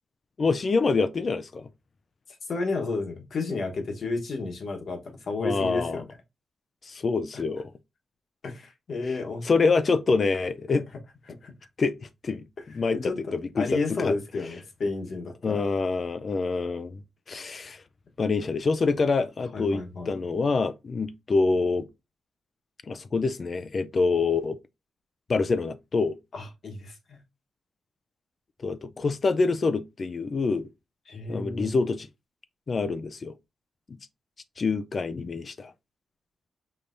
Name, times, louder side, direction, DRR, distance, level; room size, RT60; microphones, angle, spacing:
voice 1, 0.4-1.7 5.4-6.0 6.9-7.7 9.5-10.8 11.8-12.5 12.7-13.0 13.3-13.7 14.0-14.1 15.4-17.0 17.3-17.8 18.2-21.9 22.9-24.6 25.3-26.2 28.6-30.7 31.3-32.1 32.7-33.3 34.6-35.7, left 4 dB, 35° left, 0.4 m, -26 dB
voice 2, 2.4-6.0 7.3-7.4 8.4-9.5 11.4-11.5 12.9-15.6 19.5-20.1 26.3-27.2 31.1-31.8, left 3 dB, 50° left, 1.2 m, -32 dB
5.4 x 3.3 x 2.6 m
wide cardioid pair, 150°, 0 cm